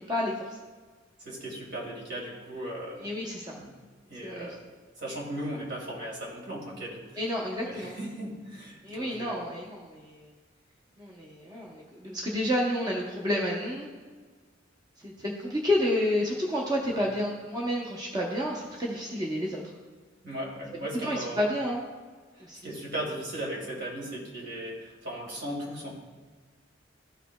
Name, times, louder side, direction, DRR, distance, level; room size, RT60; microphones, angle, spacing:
voice 1, 1.2-3.1 3.6-3.7 4.1-4.6 5.0-7.2 7.6-9.4 16.9-17.1 20.2-21.4 22.3-25.9, right 1 dB, 65° right, -2 dB, 2.0 m, -37 dB
voice 2, 3.0-3.5 4.2-4.5 7.2-7.9 8.8-10.3 11.0-13.9 15.0-19.6 21.0-21.8 22.4-22.6, left 1 dB, 20° right, -2 dB, 0.8 m, -30 dB
13.5 x 4.9 x 2.2 m, 1.5 s
head